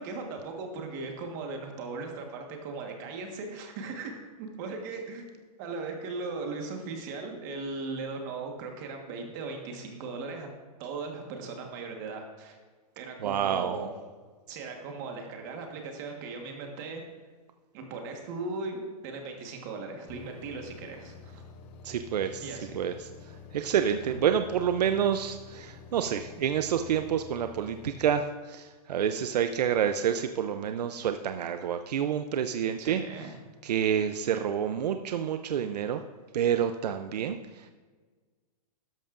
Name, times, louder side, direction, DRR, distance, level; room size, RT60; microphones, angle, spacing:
voice 1, 0.0-5.3 5.6-10.5 10.8-12.6 12.9-13.9 14.5-17.0 17.7-21.4 22.4-22.9 24.1-24.2 32.8-33.3, right 3 dB, 30° right, 3 dB, 1.4 m, -38 dB
voice 2, 13.2-13.8 21.8-33.0 33.6-36.0 36.3-37.7, right 8 dB, 90° right, 8 dB, 0.6 m, -28 dB
sound 1, 20.1-28.1, left 4 dB, 20° left, 0.4 m, -49 dB
13.0 x 10.5 x 2.5 m, 1.4 s
hypercardioid pair, 175°, 20 cm